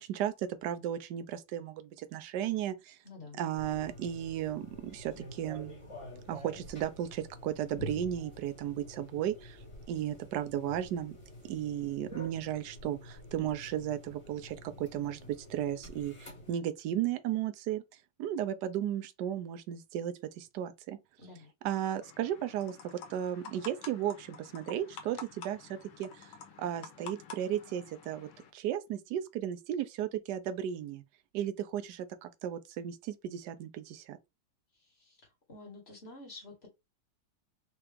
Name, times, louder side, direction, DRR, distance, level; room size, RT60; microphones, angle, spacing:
voice 1, 0.0-3.0 3.3-5.7 6.3-9.6 9.9-11.2 11.4-17.8 18.2-21.0 21.6-26.3 26.6-31.0 31.3-34.2, right 11 dB, 70° right, 1.0 m, -35 dB
voice 2, 3.0-3.4 21.2-21.5 34.8-35.2 35.5-36.7, left 3 dB, 30° left, 1.7 m, -49 dB
sound 1, 3.5-16.5, left 1 dB, 15° left, 1.5 m, -48 dB
sound 2, 22.0-28.5, left 6 dB, 75° left, 1.7 m, -49 dB
4.7 x 2.9 x 3.4 m
omnidirectional pair, 2.3 m